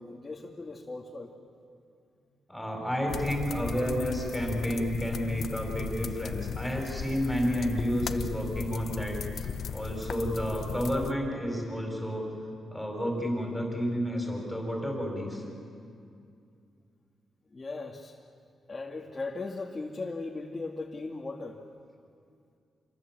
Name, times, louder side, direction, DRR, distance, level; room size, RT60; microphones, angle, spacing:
voice 1, 0.0-1.3 17.5-18.2 18.7-21.6, left 3 dB, 25° left, -1 dB, 1.9 m, -38 dB
voice 2, 2.5-9.4 9.7-12.2 12.7-15.4, equal, 5° left, 1 dB, 4.9 m, -31 dB
sound 1, 3.1-11.1, left 7 dB, 65° left, 0.8 m, -37 dB
26.5 x 22.0 x 7.5 m, 2.4 s
cardioid pair, 110°, 0 cm